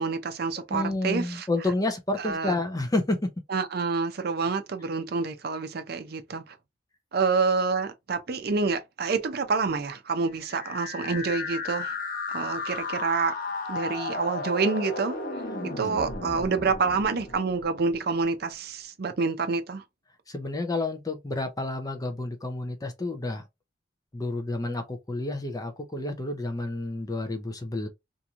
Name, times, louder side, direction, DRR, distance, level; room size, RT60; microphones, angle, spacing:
voice 1, 0.0-1.5 2.2-2.6 3.5-6.6 7.1-11.9 12.3-13.3 13.7-15.2 15.8-19.8, right 4 dB, 60° right, 0.6 m, -27 dB
voice 2, 0.7-3.3 20.3-23.4 24.1-27.9, left 2 dB, 20° left, 0.5 m, -30 dB
sound 1, 10.3-18.3, left 3 dB, 50° left, 0.8 m, -34 dB
2.9 x 2.6 x 2.4 m
head